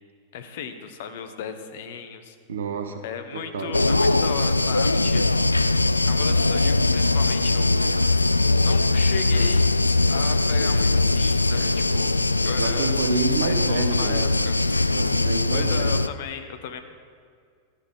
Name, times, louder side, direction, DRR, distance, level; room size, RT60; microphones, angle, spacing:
voice 1, 0.3-2.4 3.0-5.4 6.0-8.1 8.6-9.8 10.1-13.0 13.4-14.6 15.5-16.8, left 7 dB, 55° left, 8 dB, 1.2 m, -35 dB
voice 2, 2.5-3.0 3.3-3.8 12.5-14.4 14.9-16.0, right 3 dB, 65° right, 8 dB, 1.2 m, -28 dB
sound 1, 3.7-16.1, left 2 dB, 85° left, 0.3 m, -21 dB
14.5 x 12.5 x 4.4 m, 2.2 s
figure-of-eight pair, 90°, 0 cm